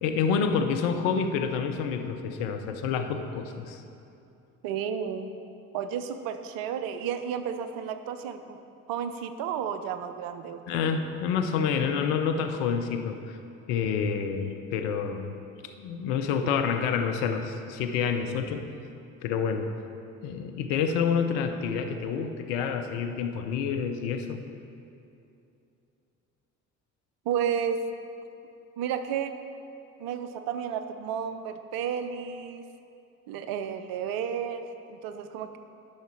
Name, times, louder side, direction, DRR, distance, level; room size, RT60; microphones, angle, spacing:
voice 1, 0.0-3.8 10.7-13.4 13.7-15.4 15.8-18.7 19.2-19.7 20.2-24.4, left 6 dB, 70° left, 6 dB, 0.8 m, -28 dB
voice 2, 4.6-5.3 5.7-8.6 8.9-10.9 27.2-27.9 28.8-29.4 30.0-32.6 33.3-35.6, right 8 dB, 60° right, 9 dB, 0.7 m, -32 dB
12.0 x 5.7 x 4.5 m, 2.7 s
hypercardioid pair, 50°, 39 cm